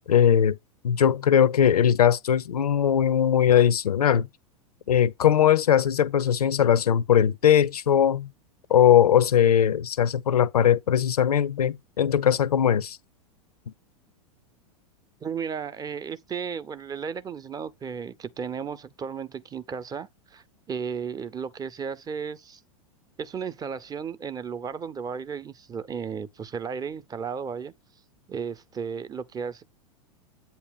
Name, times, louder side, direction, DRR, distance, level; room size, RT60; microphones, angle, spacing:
voice 1, 0.1-0.6 0.8-4.3 4.9-8.3 8.7-13.0, left 9 dB, 85° left, 0.6 m, -20 dB
voice 2, 15.2-22.6 23.2-27.7 28.3-29.6, right 6 dB, 20° right, 0.7 m, -34 dB
8.3 x 2.8 x 5.1 m
hypercardioid pair, 105°, 19 cm